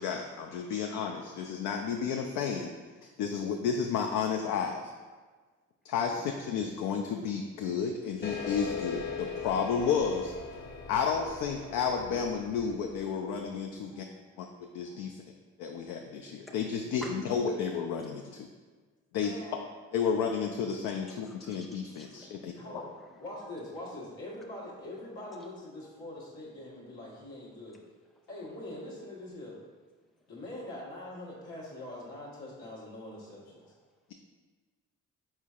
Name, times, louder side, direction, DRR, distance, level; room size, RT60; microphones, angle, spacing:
voice 1, 0.0-2.7 3.0-4.9 5.8-10.3 10.9-14.1 14.4-14.5 14.7-15.2 15.6-18.5 19.1-19.3 19.9-22.5, left 6 dB, 65° left, 3 dB, 0.5 m, -32 dB
sound 1, 8.2-13.3, left 6 dB, 30° left, 0.8 m, -40 dB
voice 2, 13.8-14.5 14.9-15.2 15.7-15.9 16.5-16.6 17.0-17.3 21.0-23.6 25.4-25.5 25.8-26.0 31.4-31.5 33.6-33.7, left 1 dB, ahead, 1 dB, 0.6 m, -50 dB
voice 3, 19.2-19.6 22.1-22.2 22.5-22.9 23.2-27.8 28.3-29.6 30.3-33.6, left 1 dB, 80° left, -5 dB, 1.3 m, -43 dB
4.4 x 4.3 x 2.4 m, 1.4 s
hypercardioid pair, 50°, 36 cm